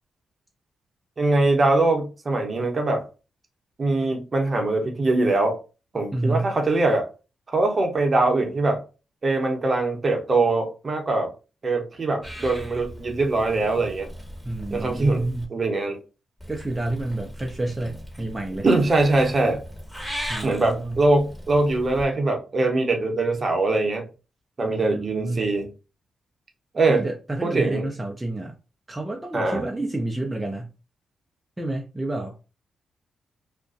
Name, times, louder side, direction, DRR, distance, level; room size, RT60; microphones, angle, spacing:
voice 1, 1.2-3.1 3.8-5.6 5.9-7.1 7.5-8.8 9.2-11.3 11.6-14.1 14.7-16.0 18.6-19.6 20.4-24.0 24.6-25.7 26.7-27.0 27.4-27.9 29.3-29.6, right 2 dB, 45° right, 0.8 m, -22 dB
voice 2, 6.1-6.5 14.4-15.5 16.5-18.7 20.3-21.0 24.7-25.5 26.9-28.6 28.9-30.7 31.6-32.4, right 2 dB, 20° right, 0.5 m, -29 dB
Purr / Meow, 12.2-15.5 16.4-22.0, equal, 10° left, 1.2 m, -38 dB
2.4 x 2.2 x 2.5 m
hypercardioid pair, 45°, 0 cm